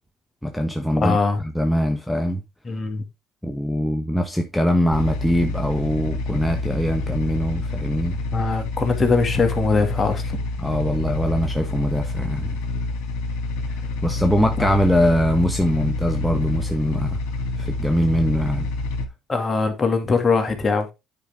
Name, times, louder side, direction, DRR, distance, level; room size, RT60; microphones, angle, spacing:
voice 1, 0.4-2.4 3.4-8.2 10.6-12.6 13.7-17.2 17.6-18.7, equal, 5° left, 1.2 m, -22 dB
voice 2, 1.0-1.4 2.6-3.0 8.3-10.4 14.6-14.7 19.3-20.9, left 4 dB, 30° left, 2.3 m, -21 dB
sound 1, 4.9-19.0, left 3 dB, 80° left, 2.2 m, -28 dB
9.9 x 5.3 x 3.7 m
supercardioid pair, 85°, 0 cm